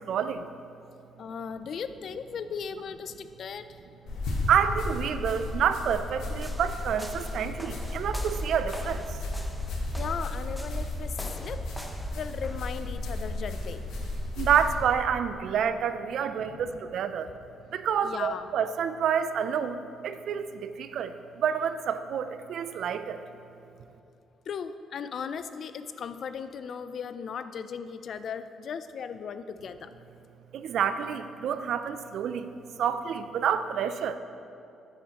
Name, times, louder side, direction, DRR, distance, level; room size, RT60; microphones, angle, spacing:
voice 1, 0.1-0.5 4.5-9.2 14.4-17.3 17.7-23.2 30.5-32.5 32.8-34.2, right 8 dB, 70° right, 10 dB, 0.4 m, -28 dB
voice 2, 1.2-3.8 10.0-11.7 12.1-13.8 16.5-16.6 18.0-18.5 24.5-29.9, left 6 dB, 60° left, 11 dB, 0.4 m, -37 dB
sound 1, 4.1-14.8, left 2 dB, 85° left, 1.4 m, -34 dB
sound 2, 6.3-12.7, equal, 5° left, 0.8 m, -41 dB
9.2 x 8.9 x 3.0 m, 2.6 s
cardioid pair, 90°, 0 cm